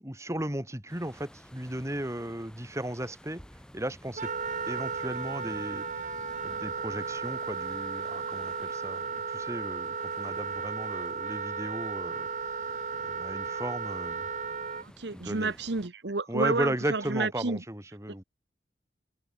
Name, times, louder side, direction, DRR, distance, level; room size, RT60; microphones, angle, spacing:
voice 1, 0.0-3.4 3.7-4.3 4.7-12.7 13.0-14.3 15.1-15.6 16.3-18.2, right 1 dB, 15° right, 2.8 m, -36 dB
sound 1, 0.9-15.9, equal, 5° left, 5.5 m, -54 dB
Wind instrument woodwind instrument, 4.2-14.8, right 5 dB, 45° right, 1.5 m, -35 dB
voice 2, 14.8-17.6, right 3 dB, 65° right, 1.2 m, -30 dB
head